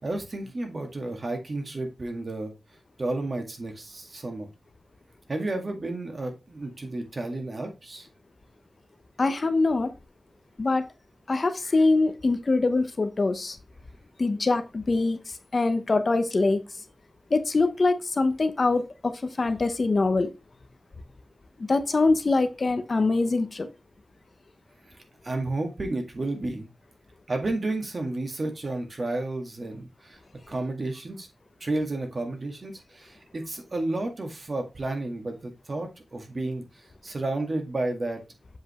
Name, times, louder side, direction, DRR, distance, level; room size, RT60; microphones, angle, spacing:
voice 1, 0.0-2.5 3.0-4.5 5.3-8.1 24.9-25.0 25.2-26.7 27.3-30.2 30.5-31.3 31.6-36.6 37.0-38.2, right 2 dB, 40° right, 3 dB, 1.9 m, -31 dB
voice 2, 9.2-9.9 10.6-10.8 11.3-13.6 14.2-15.2 15.5-16.6 17.3-20.3 21.7-23.7, left 3 dB, 45° left, 9 dB, 0.8 m, -23 dB
7.6 x 5.2 x 3.0 m, 0.27 s
wide cardioid pair, 110°, 0 cm